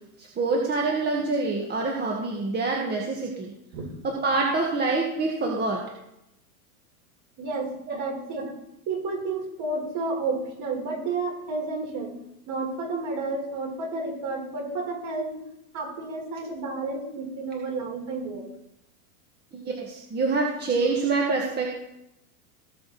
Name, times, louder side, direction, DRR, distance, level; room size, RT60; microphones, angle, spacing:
voice 1, 0.2-3.5 4.0-5.8 7.9-8.0 19.5-21.8, right 3 dB, 20° right, -1 dB, 1.9 m, -26 dB
voice 2, 7.4-8.5 8.9-12.2 12.5-15.4 15.7-18.5, right 3 dB, 40° right, 1 dB, 4.8 m, -31 dB
18.0 x 6.9 x 4.3 m, 0.83 s
hypercardioid pair, 115°, 45 cm